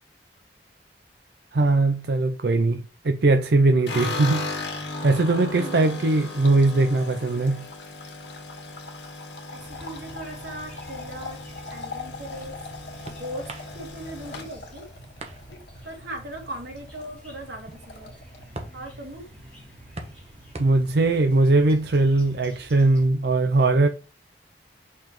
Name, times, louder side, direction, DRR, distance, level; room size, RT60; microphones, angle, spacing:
voice 1, 1.5-7.7 20.6-23.9, right 2 dB, 65° right, 0.5 m, -20 dB
sound 1, 3.9-16.1 16.4-17.1 17.3-17.4 17.7-18.4, left 2 dB, 75° left, 1.7 m, -36 dB
voice 2, 9.5-11.4 11.7-12.5 13.1-13.5 13.7-14.8 15.8-18.1 18.7-19.3, right 1 dB, 85° right, 2.9 m, -38 dB
sound 2, 9.6-23.1, right 1 dB, 5° left, 3.2 m, -48 dB
sound 3, 12.3-23.1, right 2 dB, 35° right, 1.1 m, -46 dB
6.9 x 5.6 x 3.1 m
head